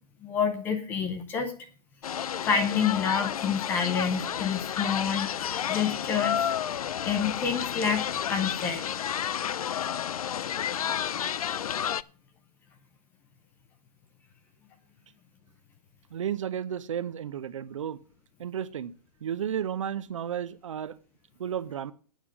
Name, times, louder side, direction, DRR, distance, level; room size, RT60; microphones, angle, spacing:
voice 1, 0.2-1.5 2.4-6.4 7.0-8.8, left 6 dB, 10° left, 0.6 m, -28 dB
sound 1, 2.0-12.0, left 9 dB, 60° left, 0.5 m, -31 dB
voice 2, 16.1-18.0 18.4-18.9 19.2-20.9 21.4-21.9, right 9 dB, 50° right, 0.7 m, -33 dB
9.2 x 8.6 x 6.1 m
hypercardioid pair, 165°, 21 cm